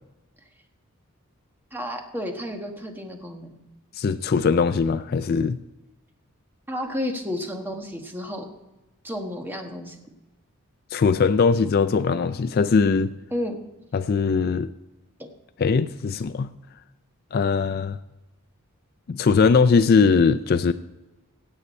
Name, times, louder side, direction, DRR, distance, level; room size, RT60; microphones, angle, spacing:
voice 1, 1.7-3.5 6.7-8.5 9.0-10.0 13.3-13.6 15.2-15.3, left 1 dB, 10° right, 3 dB, 1.3 m, -31 dB
voice 2, 3.9-5.6 10.9-13.1 13.9-14.7 15.6-16.5 17.3-18.0 19.1-20.7, left 5 dB, 45° left, 12 dB, 0.3 m, -20 dB
16.5 x 8.1 x 4.2 m, 1.1 s
head